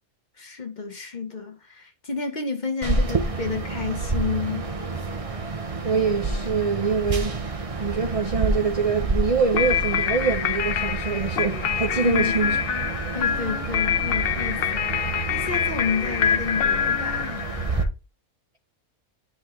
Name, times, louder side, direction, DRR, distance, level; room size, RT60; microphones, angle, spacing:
voice 1, 0.4-4.7 12.0-12.4 13.1-17.3, left 5 dB, 35° left, 1.0 m, -30 dB
sound 1, 2.8-17.8, right 3 dB, 30° right, 0.7 m, -29 dB
voice 2, 5.8-7.4 7.8-12.6, right 5 dB, 65° right, 0.3 m, -24 dB
sound 2, 9.5-17.8, left 8 dB, 60° left, 0.6 m, -26 dB
10.0 x 4.2 x 3.1 m
omnidirectional pair, 1.5 m